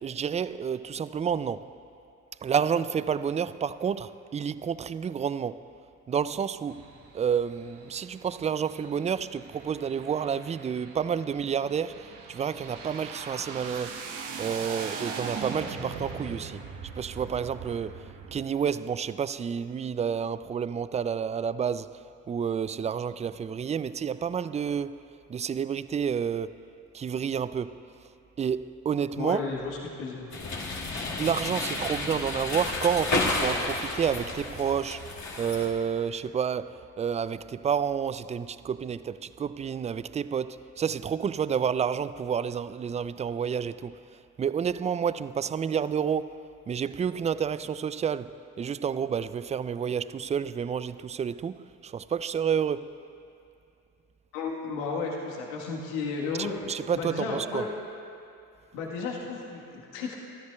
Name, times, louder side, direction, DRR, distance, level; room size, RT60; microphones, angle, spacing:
voice 1, 0.0-1.7 2.4-5.6 6.1-6.8 7.1-14.0 14.4-16.6 17.0-18.0 18.3-22.0 22.3-25.0 25.3-26.6 26.9-27.8 28.4-29.4 31.2-35.0 35.4-44.0 44.4-46.4 46.7-52.9 56.4-57.6, right 7 dB, 20° right, 0.3 m, -29 dB
sound 1, 6.7-18.4, right 5 dB, 75° right, 1.4 m, -41 dB
voice 2, 29.2-30.3 54.3-56.6 56.9-57.7 58.7-60.2, left 4 dB, 80° left, 1.5 m, -33 dB
sound 2, 30.3-35.7, left 3 dB, 45° left, 2.1 m, -31 dB
24.5 x 13.0 x 2.3 m
hypercardioid pair, 50°, 40 cm